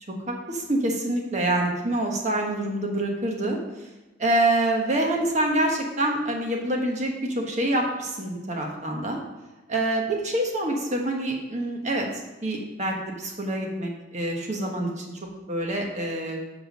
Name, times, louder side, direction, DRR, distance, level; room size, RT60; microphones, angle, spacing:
voice 1, 0.3-3.9 4.2-9.2 9.7-12.1 12.4-15.1 15.5-16.4, right 1 dB, 35° right, 1 dB, 1.2 m, -26 dB
8.0 x 3.7 x 6.5 m, 1.1 s
head